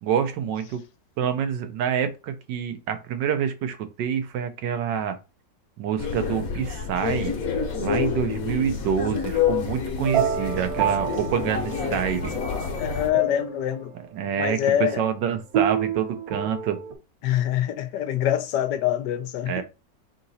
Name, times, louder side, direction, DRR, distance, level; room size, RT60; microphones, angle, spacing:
voice 1, 0.0-0.8 1.2-5.2 5.8-7.3 7.8-12.4 14.1-16.8 19.5-19.6, right 8 dB, 80° right, 1.4 m, -27 dB
sound 1, 6.0-13.1, left 6 dB, 55° left, 1.3 m, -28 dB
sound 2, 10.0-12.2 12.7-13.8 15.5-16.9, right 9 dB, 60° right, 1.1 m, -28 dB
voice 2, 12.8-13.9 14.4-15.0 17.2-19.6, left 11 dB, 80° left, 1.2 m, -24 dB
3.8 x 2.8 x 4.0 m
omnidirectional pair, 1.9 m